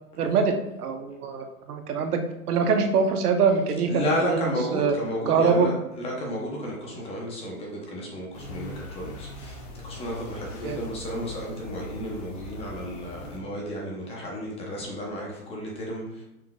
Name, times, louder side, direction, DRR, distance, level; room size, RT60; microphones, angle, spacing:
voice 1, 0.2-2.2 2.5-4.9 5.3-5.7 10.6-10.8, right 5 dB, 80° right, 5 dB, 0.9 m, -24 dB
voice 2, 3.9-16.2, equal, 15° left, -2 dB, 0.7 m, -32 dB
sound 1, 8.3-13.4, left 2 dB, 45° left, 1.2 m, -40 dB
5.9 x 3.6 x 2.3 m, 0.91 s
hypercardioid pair, 140°, 45 cm